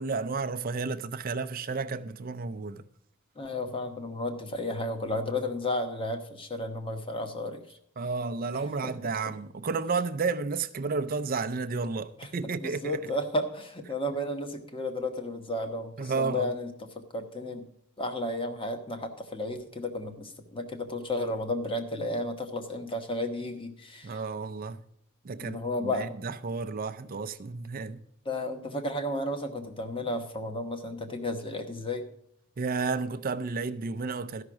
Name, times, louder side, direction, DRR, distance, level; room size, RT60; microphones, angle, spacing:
voice 1, 0.0-2.8 8.0-13.1 16.0-16.5 24.0-24.8 25.2-25.6 25.8-28.0 32.6-34.4, right 4 dB, 40° right, 0.4 m, -32 dB
voice 2, 3.4-7.8 8.5-9.0 12.2-12.3 12.6-17.7 18.0-24.2 25.4-26.1 28.2-32.1, left 1 dB, 25° left, 1.1 m, -33 dB
13.0 x 5.8 x 6.1 m
head